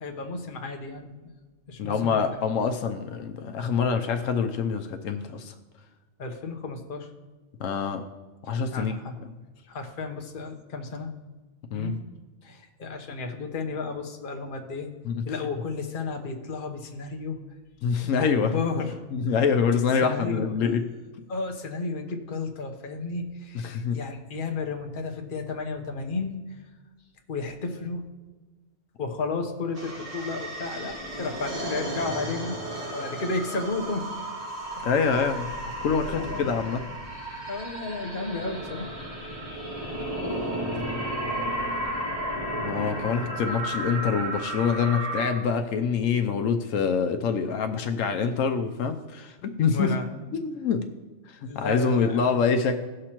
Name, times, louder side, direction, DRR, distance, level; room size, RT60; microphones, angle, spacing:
voice 1, 0.0-1.2 1.7-2.2 6.2-7.1 8.7-9.2 9.7-11.1 11.7-12.0 12.4-14.9 15.2-17.4 18.0-19.4 20.0-20.7 21.3-26.4 27.3-28.0 29.0-32.6 32.9-34.1 35.3-35.7 36.0-36.6 37.5-38.9 49.6-50.1 51.5-52.3, left 3 dB, 45° left, 3 dB, 1.1 m, -33 dB
voice 2, 1.8-5.5 7.6-8.0 8.4-9.0 11.7-11.9 15.0-15.2 17.8-18.6 19.1-20.8 23.6-24.0 34.8-36.8 42.6-49.9 50.3-50.8 51.3-52.8, left 6 dB, 80° left, 6 dB, 1.0 m, -25 dB
sound 1, 29.7-45.3, right 1 dB, 25° right, 2.2 m, -33 dB
17.0 x 6.4 x 3.0 m, 1.3 s
omnidirectional pair, 1.3 m